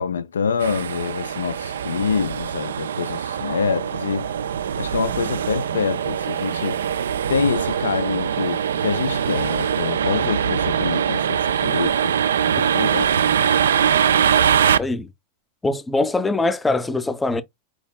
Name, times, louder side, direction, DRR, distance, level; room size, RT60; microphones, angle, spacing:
voice 1, 0.0-4.3 4.8-6.8 7.3-12.1 12.7-13.1, left 6 dB, 70° left, 0.4 m, -26 dB
sound 1, 0.6-14.8, right 8 dB, 65° right, 0.3 m, -22 dB
voice 2, 14.7-15.1 15.6-17.4, left 2 dB, 10° left, 0.5 m, -22 dB
4.9 x 4.6 x 2.2 m
figure-of-eight pair, 90°, 0 cm